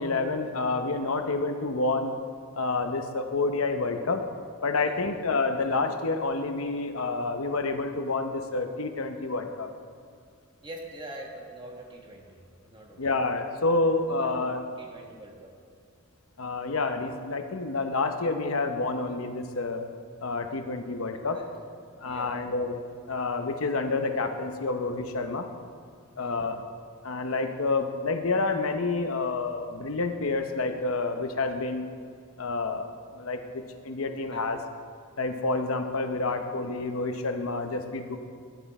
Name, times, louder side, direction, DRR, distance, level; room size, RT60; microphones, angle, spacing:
voice 1, 0.0-2.2 2.6-4.3 4.6-9.7 13.0-14.6 16.4-19.8 20.2-21.4 22.0-22.8 23.1-25.5 26.2-26.6 27.0-31.9 32.4-32.9 33.2-34.6 35.2-38.2, left 3 dB, 85° left, 6 dB, 0.9 m, -28 dB
voice 2, 4.7-5.2 10.6-13.2 13.9-14.3 14.8-15.5 21.3-21.5 22.0-22.5 26.1-26.7 34.2-34.5 36.2-36.4, right 1 dB, 25° right, 0 dB, 1.7 m, -45 dB
14.5 x 10.5 x 4.3 m, 2.1 s
head